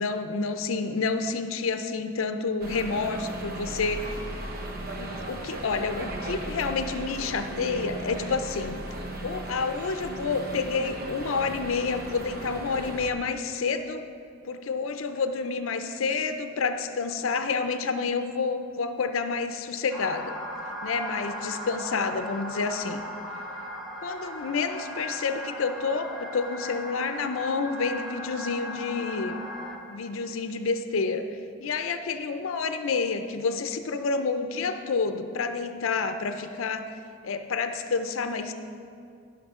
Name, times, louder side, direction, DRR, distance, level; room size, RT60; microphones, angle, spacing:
voice 1, 0.0-4.2 5.0-8.8 9.2-14.0 14.4-20.4 20.8-23.0 24.0-29.4 29.9-31.3 31.6-36.9 37.2-38.5, left 4 dB, 80° left, 8 dB, 0.5 m, -29 dB
sound 1, 2.6-13.1, right 1 dB, 45° right, 0.8 m, -36 dB
sound 2, 19.9-29.8, left 1 dB, ahead, 1.6 m, -37 dB
17.0 x 6.0 x 3.7 m, 2.4 s
head